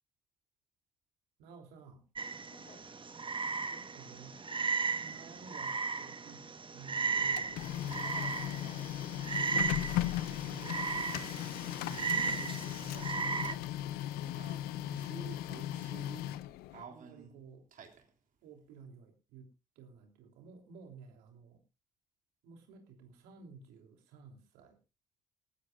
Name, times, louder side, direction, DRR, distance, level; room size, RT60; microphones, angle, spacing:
voice 1, 1.4-2.0 3.6-4.4 5.0-8.1 10.4-13.2 14.8-15.2 16.9-17.6 18.4-19.5 19.7-21.6 22.4-24.8, right 5 dB, 75° right, 3 dB, 3.3 m, -53 dB
Frog, 2.2-13.5, right 5 dB, 30° right, 1.2 m, -36 dB
voice 2, 2.5-2.9 6.7-6.8 7.9-8.9 9.1-9.7 13.5-13.7 14.2-14.5, left 4 dB, 50° left, 5 dB, 5.5 m, -57 dB
Printer, 7.1-16.9, left 13 dB, 75° left, 0.8 m, -37 dB
sound 1, 14.3-16.4 16.7-18.1, right 6 dB, 55° right, 3.2 m, -51 dB
20.0 x 15.0 x 2.5 m, 0.28 s
hypercardioid pair, 50°, 16 cm